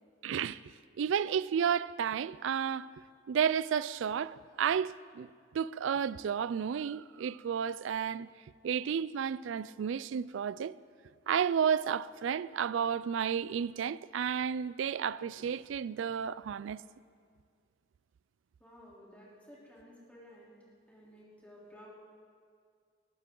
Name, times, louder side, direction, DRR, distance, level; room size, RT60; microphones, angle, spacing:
voice 1, 0.2-0.6 1.0-2.9 3.3-8.3 8.6-10.8 11.3-16.8, right 7 dB, 80° right, 0.3 m, -32 dB
voice 2, 18.6-20.5 20.9-21.9, equal, 5° left, 3.3 m, -54 dB
20.5 x 13.0 x 3.8 m
head